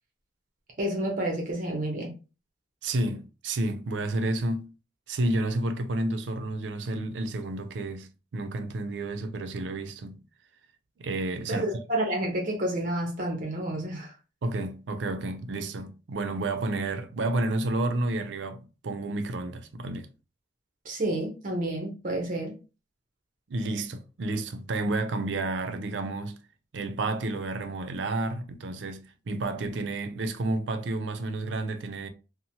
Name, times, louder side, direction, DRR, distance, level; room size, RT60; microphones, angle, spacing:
voice 1, 0.8-2.1 11.5-14.1 20.8-22.6, right 1 dB, 45° right, 0.7 m, -30 dB
voice 2, 2.8-4.7 5.1-10.2 11.0-11.6 14.4-20.1 23.5-26.4 26.7-32.1, right 2 dB, 90° right, 0.4 m, -30 dB
2.9 x 2.0 x 2.7 m
head